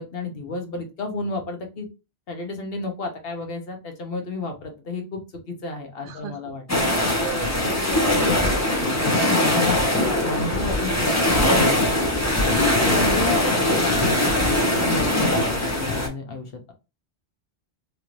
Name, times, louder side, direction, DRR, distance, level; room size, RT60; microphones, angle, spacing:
voice 1, 0.0-1.9 2.3-5.2 5.5-6.6 7.4-12.4 12.8-16.7, left 3 dB, 65° left, 3 dB, 1.0 m, -32 dB
sound 1, 6.7-16.1, left 1 dB, 20° left, 0.6 m, -21 dB
voice 2, 6.7-8.3 13.6-13.7, right 6 dB, 60° right, 6 dB, 0.8 m, -37 dB
3.1 x 2.5 x 2.9 m, 0.29 s
omnidirectional pair, 1.1 m